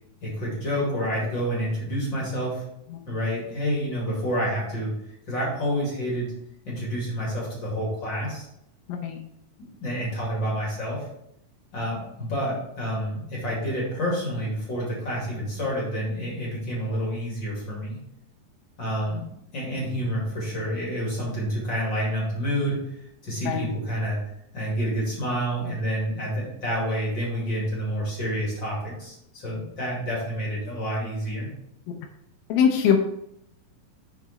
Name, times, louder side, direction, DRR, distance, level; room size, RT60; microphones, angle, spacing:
voice 1, 0.2-2.6 3.1-4.9 5.2-6.3 6.7-8.5 9.6-11.1 11.7-18.0 18.8-19.2 19.5-23.0 23.2-24.2 24.5-31.5, equal, 35° left, -4 dB, 2.4 m, -28 dB
voice 2, 32.5-33.0, left 7 dB, 85° left, 3 dB, 2.7 m, -21 dB
6.2 x 6.0 x 4.1 m, 0.78 s
omnidirectional pair, 4.1 m